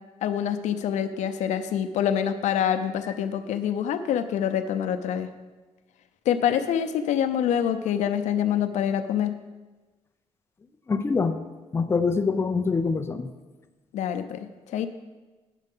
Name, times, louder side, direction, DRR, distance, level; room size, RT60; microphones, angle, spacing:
voice 1, 0.2-5.3 6.3-9.3 13.9-14.9, left 9 dB, 90° left, 8 dB, 0.6 m, -26 dB
voice 2, 10.9-11.4 11.7-13.3, left 4 dB, 20° left, 7 dB, 0.5 m, -24 dB
9.2 x 6.6 x 5.4 m, 1.2 s
cardioid pair, 130°, 12 cm